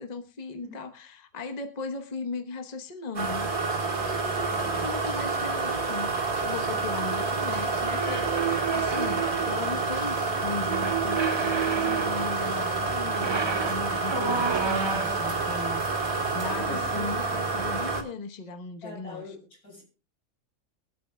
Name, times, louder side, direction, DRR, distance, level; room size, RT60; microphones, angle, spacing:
voice 1, 0.0-3.5 4.0-6.1 6.4-15.8 16.3-19.2, left 4 dB, 30° left, 6 dB, 1.1 m, -37 dB
voice 2, 0.5-0.9 4.5-4.8 14.0-14.5 16.4-17.5 18.8-19.8, left 2 dB, 90° left, -2 dB, 6.1 m, -44 dB
sound 1, 3.2-18.0, right 3 dB, 65° right, 2.5 m, -28 dB
sound 2, 7.8-9.7 10.7-12.5 13.1-15.3, right 6 dB, 45° right, 0.3 m, -30 dB
22.5 x 8.4 x 2.2 m, 0.33 s
omnidirectional pair, 1.6 m